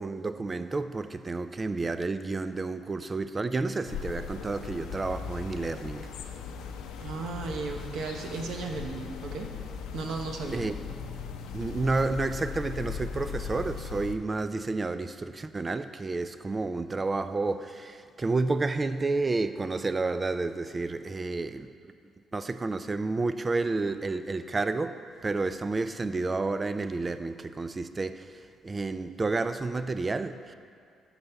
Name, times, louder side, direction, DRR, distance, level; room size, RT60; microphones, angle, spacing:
voice 1, 0.0-6.1 10.5-10.7 11.5-21.7 22.3-25.0 25.2-30.5, right 3 dB, 25° right, 11 dB, 0.4 m, -30 dB
sound 1, 3.9-14.1, left 6 dB, 90° left, 0.6 m, -38 dB
voice 2, 7.0-9.5 9.9-10.7, right 4 dB, 70° right, 3 dB, 1.0 m, -35 dB
10.5 x 4.1 x 6.9 m, 2.3 s
cardioid pair, 90°, 0 cm